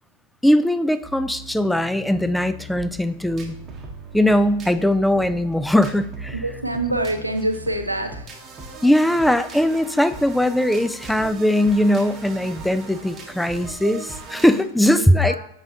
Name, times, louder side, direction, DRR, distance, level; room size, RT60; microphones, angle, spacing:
voice 1, 0.4-3.6 4.1-6.4 8.8-15.4, left 1 dB, ahead, 12 dB, 0.3 m, -20 dB
sound 1, 1.0-14.6, right 3 dB, 25° right, 1.0 m, -39 dB
voice 2, 6.4-8.3 14.9-15.4, right 1 dB, 85° right, 7 dB, 0.6 m, -25 dB
6.7 x 5.5 x 2.7 m, 0.75 s
figure-of-eight pair, 90°, 0 cm